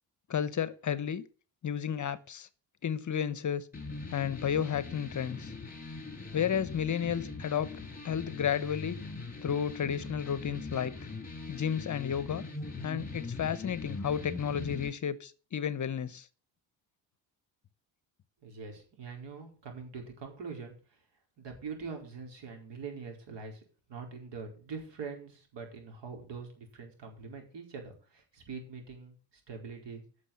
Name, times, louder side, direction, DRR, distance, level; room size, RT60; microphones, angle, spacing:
voice 1, 0.3-1.2 1.6-2.5 2.8-3.7 4.1-5.5 6.3-7.7 8.0-9.0 9.4-11.0 11.5-12.4 12.8-16.3, left 8 dB, 40° left, 0.9 m, -32 dB
sound 1, 3.7-14.9, left 3 dB, 20° left, 5.6 m, -41 dB
voice 2, 18.4-20.7 21.4-23.6 23.9-30.0, right 5 dB, 60° right, 4.7 m, -43 dB
9.8 x 6.7 x 8.6 m
supercardioid pair, 80°, 47 cm